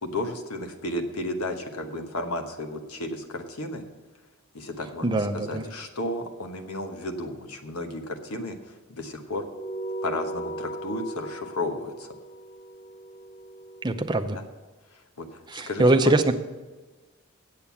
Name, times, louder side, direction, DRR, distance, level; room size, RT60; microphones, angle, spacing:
voice 1, 0.0-3.8 4.5-9.5 10.0-12.1 14.9-16.1, left 1 dB, 85° left, 5 dB, 1.2 m, -33 dB
voice 2, 5.0-5.6 13.8-14.4 15.5-16.3, right 2 dB, 20° right, 7 dB, 0.6 m, -22 dB
sound 1, 9.5-14.3, right 1 dB, 50° left, 0.8 m, -38 dB
8.8 x 7.9 x 7.1 m, 1.2 s
head